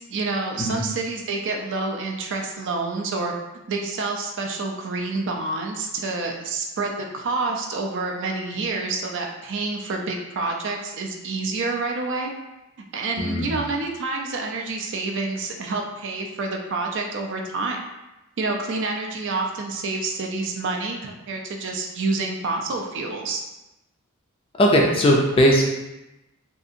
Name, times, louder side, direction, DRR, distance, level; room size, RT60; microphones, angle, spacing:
voice 1, 0.0-3.3 3.7-12.3 12.9-17.8 18.4-23.4, right 3 dB, 55° right, 1 dB, 0.4 m, -28 dB
voice 2, 13.2-13.5 24.6-25.6, equal, 25° left, -1 dB, 0.3 m, -18 dB
2.7 x 2.4 x 2.6 m, 0.96 s
head